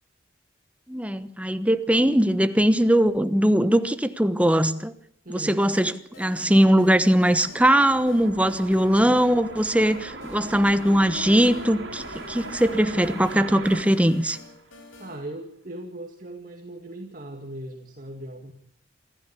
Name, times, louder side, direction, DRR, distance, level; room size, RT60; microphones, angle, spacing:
voice 1, 0.9-4.9 5.3-14.4, equal, 5° right, 1.0 m, -20 dB
voice 2, 5.2-5.7 9.0-9.2 15.0-18.5, right 1 dB, 45° right, 2.3 m, -39 dB
sound 1, 5.7-15.2, left 3 dB, 90° left, 4.3 m, -48 dB
sound 2, 6.8-15.0, right 2 dB, 65° right, 4.2 m, -39 dB
26.5 x 14.5 x 8.3 m
head